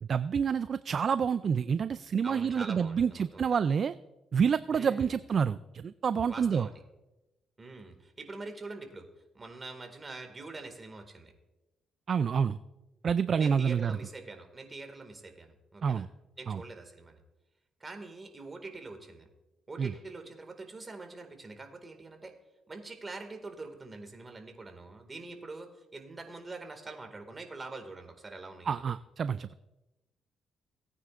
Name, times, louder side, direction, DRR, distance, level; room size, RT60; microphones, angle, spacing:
voice 1, 0.0-3.9 4.3-6.7 12.1-12.6 13.0-14.0 15.8-16.1 16.5-16.6 19.8-19.9 28.7-29.5, right 6 dB, 50° right, 14 dB, 0.3 m, -28 dB
voice 2, 2.2-3.5 4.7-5.1 6.3-6.8 7.6-9.1 9.3-11.3 13.4-16.1 16.4-17.2 17.8-19.3 19.7-22.3 22.7-28.8, right 3 dB, 25° right, 5 dB, 2.0 m, -44 dB
18.0 x 9.4 x 2.5 m, 1.0 s
cardioid pair, 90°, 0 cm